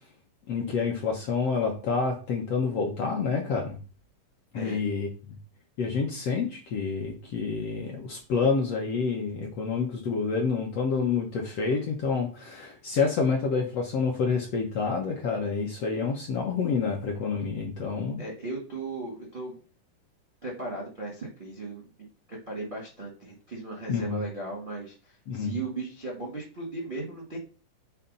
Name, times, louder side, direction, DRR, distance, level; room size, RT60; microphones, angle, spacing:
voice 1, 0.5-3.8 4.5-5.1 5.8-18.2 23.9-24.2 25.3-25.6, left 5 dB, 65° left, 0 dB, 1.6 m, -28 dB
voice 2, 18.2-19.6 20.4-21.8 22.5-27.4, right 2 dB, 40° right, -2 dB, 0.7 m, -36 dB
5.8 x 3.3 x 5.3 m, 0.35 s
omnidirectional pair, 3.9 m